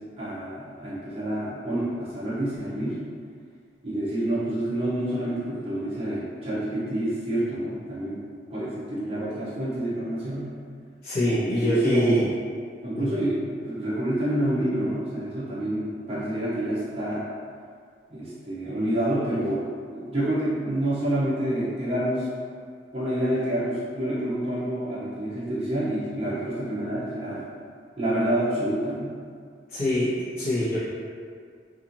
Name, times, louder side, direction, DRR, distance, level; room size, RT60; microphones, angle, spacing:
voice 1, 0.2-3.0 3.8-8.2 8.5-10.6 11.2-12.3 12.8-17.3 18.1-19.7 19.9-22.3 22.9-27.4 28.0-29.1, right 1 dB, 35° right, -10 dB, 0.6 m, -28 dB
voice 2, 11.0-12.3 12.9-13.1 29.7-30.8, left 1 dB, 55° left, -15 dB, 0.8 m, -24 dB
2.9 x 2.5 x 2.5 m, 2.2 s
head